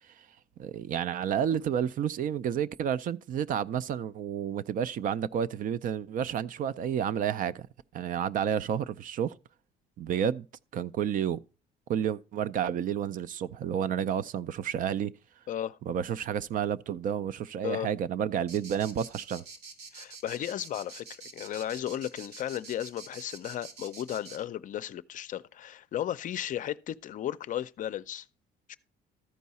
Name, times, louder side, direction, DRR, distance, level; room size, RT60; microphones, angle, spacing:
voice 1, 0.6-7.7 7.9-9.4 10.0-10.5 10.7-11.4 11.9-15.1 15.9-19.4, right 9 dB, 55° right, 0.4 m, -30 dB
voice 2, 15.5-15.8 17.6-17.9 19.9-21.0 21.3-28.3 28.7-28.8, left 11 dB, 50° left, 0.5 m, -35 dB
sound 1, 18.5-24.4, right 4 dB, 80° right, 1.6 m, -46 dB
13.5 x 4.7 x 4.1 m
cardioid pair, 110°, 17 cm